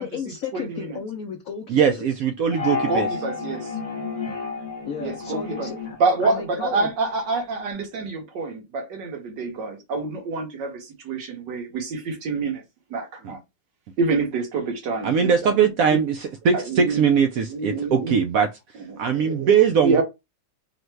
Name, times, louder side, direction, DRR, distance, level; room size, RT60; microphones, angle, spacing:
voice 1, 0.0-1.9 4.8-6.0 6.2-6.9, left 6 dB, 70° left, 0.8 m, -33 dB
voice 2, 0.5-1.0 2.7-3.7 5.0-5.7 6.0-12.6 12.9-13.4 14.0-16.0 16.5-17.0 17.5-18.1 18.9-19.5 19.8-20.0, right 3 dB, 70° right, 1.7 m, -27 dB
voice 3, 1.7-3.1 13.2-13.4 15.0-18.5 19.0-20.0, right 7 dB, 85° right, 0.7 m, -20 dB
sound 1, 2.5-7.1, left 5 dB, 45° left, 0.4 m, -31 dB
3.8 x 2.2 x 4.4 m
omnidirectional pair, 2.0 m